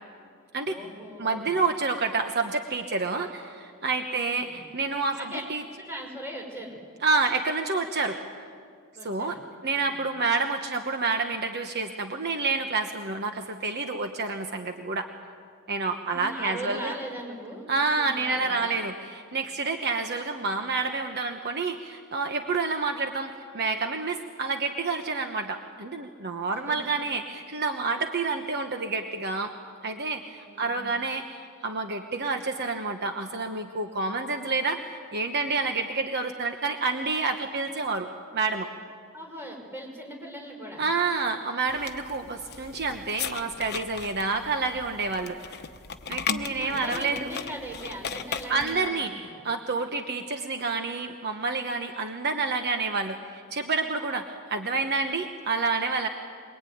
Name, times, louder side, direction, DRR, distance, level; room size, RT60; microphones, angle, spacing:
voice 1, 0.6-1.5 4.1-4.6 5.1-5.4 5.8-6.8 8.9-9.4 9.8-9.9 16.0-17.7 18.0-18.7 26.5-26.8 30.4-30.8 39.1-40.8 46.3-49.4, right 1 dB, 10° right, 0 dB, 5.7 m, -39 dB
voice 2, 1.2-5.2 5.5-5.6 7.0-8.2 9.0-9.4 9.6-15.1 15.7-16.9 17.7-29.5 29.8-38.1 38.3-38.7 40.8-45.4 46.1-47.3 48.5-56.1, right 4 dB, 50° right, 5 dB, 1.2 m, -28 dB
sound 1, 41.7-48.9, left 6 dB, 50° left, 1.0 m, -37 dB
23.5 x 22.5 x 9.4 m, 2.1 s
head